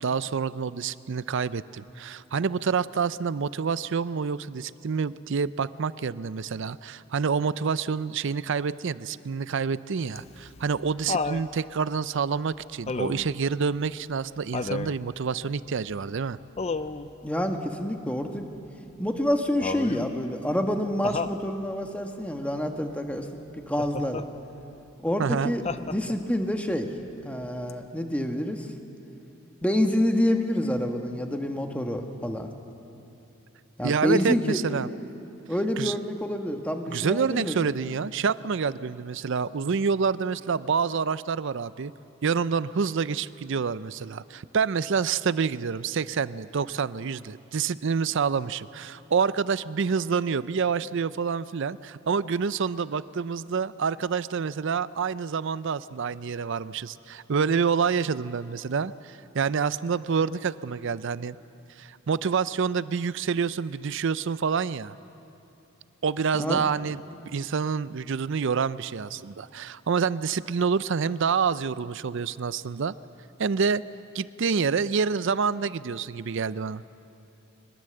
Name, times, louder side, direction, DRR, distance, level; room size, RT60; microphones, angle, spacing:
voice 1, 0.0-16.4 25.2-25.5 33.8-34.9 35.8-36.0 36.9-41.9 42.2-61.4 61.8-65.0 66.0-67.0 67.3-72.9 73.4-73.8 74.1-76.8, right 5 dB, 60° right, 16 dB, 0.5 m, -27 dB
Laughter, 10.2-11.5 12.9-13.4 14.5-15.0 16.6-17.1 19.6-20.1 21.0-21.4 23.8-24.3 25.7-26.3 27.7-27.8, left 4 dB, 30° left, 0.5 m, -31 dB
voice 2, 17.2-18.5 19.0-23.4 23.7-24.3 25.0-26.9 27.2-28.7 29.6-32.5 33.8-34.6 35.4-37.7 66.4-66.6, left 1 dB, 5° left, 4 dB, 1.3 m, -27 dB
22.5 x 21.0 x 7.8 m, 2.8 s
head